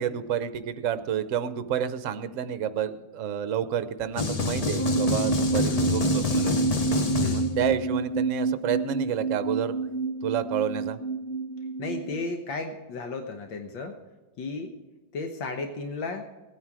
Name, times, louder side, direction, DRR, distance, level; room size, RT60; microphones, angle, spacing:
voice 1, 0.0-6.6 7.3-9.7 10.2-11.0, right 9 dB, 55° right, 12 dB, 0.9 m, -29 dB
sound 1, 4.2-7.8, left 4 dB, 60° left, 0.3 m, -27 dB
sound 2, 4.8-12.2, right 4 dB, 10° left, 2.5 m, -28 dB
voice 2, 5.6-6.0 7.1-7.5 11.8-14.0 14.4-14.7 15.1-16.3, left 3 dB, 80° left, 5 dB, 1.8 m, -34 dB
17.0 x 9.4 x 4.8 m, 1.2 s
omnidirectional pair, 2.0 m